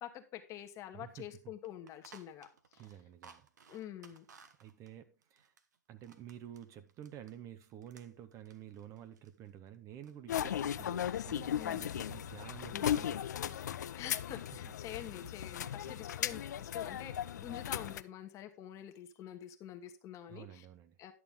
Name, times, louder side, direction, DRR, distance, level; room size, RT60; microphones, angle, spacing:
voice 1, 0.0-2.5 2.7-2.8 3.7-4.2 11.5-11.8 12.7-12.8 13.9-20.6 21.0-21.1, left 11 dB, 35° left, 1.3 m, -47 dB
voice 2, 0.9-1.3 2.8-3.5 4.6-5.5 5.9-13.8 15.9-16.0 20.3-21.0, right 10 dB, 30° right, 0.9 m, -51 dB
sound 1, 0.9-1.0 1.2-1.3 1.6-7.4 7.7-10.2 10.4-11.2 11.5-11.7 12.2-12.6 12.8-13.6, right 6 dB, 80° right, 1.2 m, -62 dB
sound 2, 10.3-18.0, left 10 dB, 75° left, 0.5 m, -37 dB
11.0 x 6.9 x 3.7 m
hypercardioid pair, 115°, 9 cm